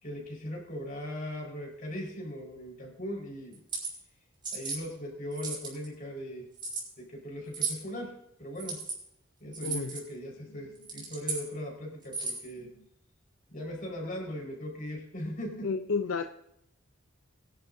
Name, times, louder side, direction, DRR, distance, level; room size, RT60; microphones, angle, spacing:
voice 1, 0.0-3.6 4.5-6.5 7.0-8.8 9.4-12.8 13.5-15.7, equal, 45° left, -1 dB, 4.4 m, -39 dB
sound 1, 3.5-3.9 4.4-4.8 5.3-5.8 6.6-6.8 7.5-7.8 8.5-9.0 9.5-10.0 10.7-11.4 12.0-12.5, right 4 dB, 25° right, 5.8 m, -35 dB
voice 2, 9.6-10.0 15.6-16.2, left 4 dB, 70° left, 7 dB, 0.5 m, -30 dB
22.5 x 11.5 x 2.6 m, 0.77 s
head